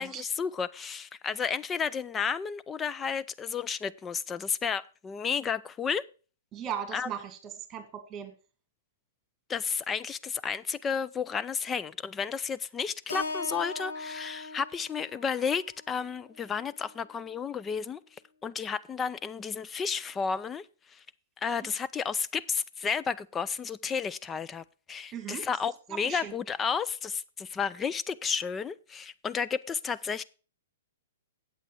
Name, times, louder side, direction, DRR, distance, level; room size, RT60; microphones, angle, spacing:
voice 1, 0.0-6.0 6.9-7.1 9.5-18.0 18.4-20.7 20.9-21.0 21.4-30.2, left 6 dB, 15° left, 0.4 m, -32 dB
voice 2, 6.5-8.3 21.6-21.7 25.1-25.5 25.9-26.4, right 9 dB, 25° right, 2.2 m, -38 dB
Keyboard (musical), 13.1-17.3, left 3 dB, 75° left, 2.0 m, -40 dB
8.3 x 8.1 x 4.7 m
hypercardioid pair, 120°, 0 cm